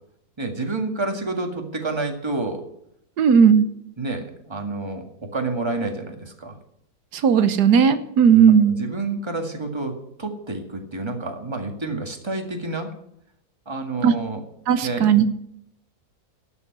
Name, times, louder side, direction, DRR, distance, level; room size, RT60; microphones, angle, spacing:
voice 1, 0.4-2.6 4.0-6.6 8.7-12.9 13.7-14.4 14.8-15.1, right 3 dB, 15° right, 4 dB, 1.9 m, -29 dB
voice 2, 3.2-3.7 7.1-8.8 14.0-14.1 14.7-15.3, right 7 dB, 90° right, 11 dB, 1.5 m, -16 dB
12.5 x 7.0 x 9.3 m, 0.75 s
omnidirectional pair, 1.7 m